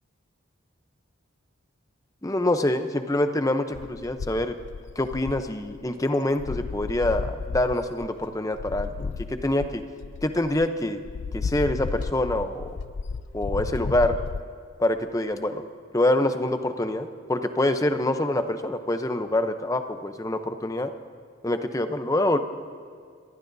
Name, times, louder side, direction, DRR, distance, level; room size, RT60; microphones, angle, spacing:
voice 1, 2.2-4.5 5.0-9.8 10.2-11.0 11.3-12.8 13.3-14.2 14.8-15.7 15.9-20.9 21.4-22.4, left 1 dB, 15° left, 8 dB, 0.7 m, -25 dB
sound 1, 3.7-6.0 6.4-10.7 11.1-14.4, left 4 dB, 60° left, 0.4 m, -33 dB
27.0 x 19.5 x 2.7 m, 2.2 s
head